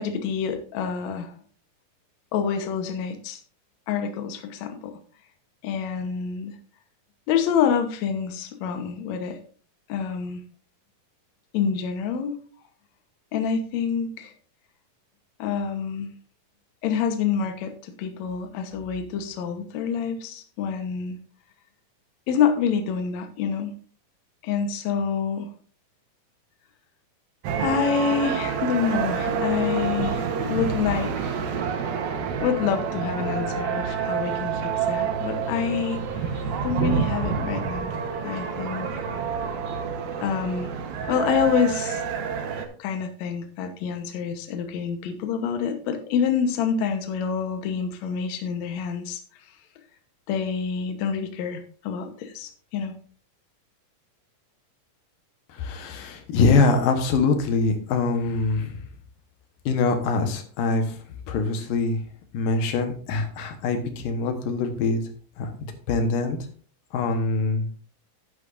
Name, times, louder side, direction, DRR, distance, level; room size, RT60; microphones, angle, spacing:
voice 1, 0.0-1.3 2.3-3.4 3.9-4.9 5.6-6.5 7.3-9.4 9.9-10.4 11.5-12.4 13.3-14.3 15.4-16.1 16.8-21.2 22.3-23.7 24.4-25.5 27.6-31.4 32.4-37.9 38.2-38.9 40.2-40.7 41.1-42.0 42.8-49.2 50.3-52.9, left 7 dB, 65° left, 6 dB, 2.2 m, -27 dB
sound 1, 27.4-42.7, right 6 dB, 85° right, 2.9 m, -28 dB
voice 2, 55.6-58.7 59.7-60.9 61.3-62.0 62.3-65.0 65.4-65.5 65.9-66.4 66.9-67.7, left 3 dB, 85° left, 6 dB, 2.9 m, -23 dB
10.5 x 9.8 x 2.6 m, 0.42 s
omnidirectional pair, 3.9 m